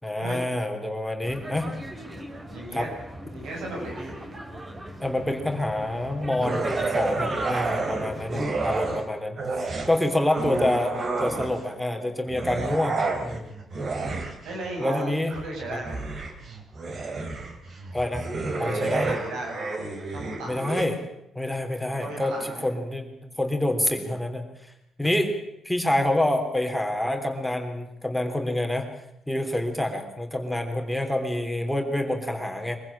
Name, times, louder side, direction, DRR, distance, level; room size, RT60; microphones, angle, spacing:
voice 1, 0.0-1.7 2.7-2.9 5.0-9.4 9.9-13.5 14.8-15.3 15.7-15.8 17.9-18.3 18.6-19.1 20.4-21.0 21.3-24.7 25.0-25.3 25.6-28.9 29.3-32.8, left 1 dB, 5° left, 4 dB, 3.5 m, -27 dB
sound 1, 1.2-9.0, right 1 dB, 25° right, 3.5 m, -39 dB
voice 2, 2.5-2.9 3.3-4.2 13.9-14.2 14.4-16.0 18.5-19.7 20.1-20.6 21.9-22.7, right 2 dB, 80° right, 0 dB, 7.2 m, -36 dB
sound 2, 6.4-9.1 9.4-11.8 12.3-20.9, right 3 dB, 50° right, 3.6 m, -30 dB
23.0 x 15.0 x 8.8 m, 0.84 s
cardioid pair, 70°, 0 cm